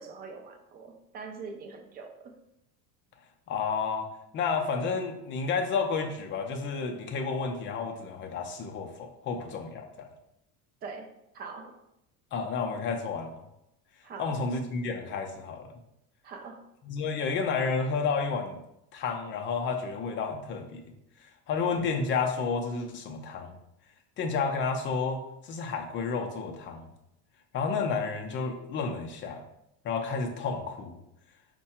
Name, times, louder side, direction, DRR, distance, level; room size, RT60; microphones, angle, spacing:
voice 1, 0.0-2.3 10.8-11.1 11.3-11.8 14.0-14.4 16.2-16.6, right 4 dB, 25° right, 5 dB, 0.4 m, -43 dB
voice 2, 3.5-4.1 4.3-10.1 12.3-13.4 14.2-15.7 16.8-18.6 18.9-20.8 21.5-23.6 24.2-26.8 27.5-29.4 29.8-30.9, left 5 dB, 30° left, 3 dB, 0.5 m, -31 dB
4.6 x 2.2 x 4.2 m, 0.83 s
cardioid pair, 155°, 38 cm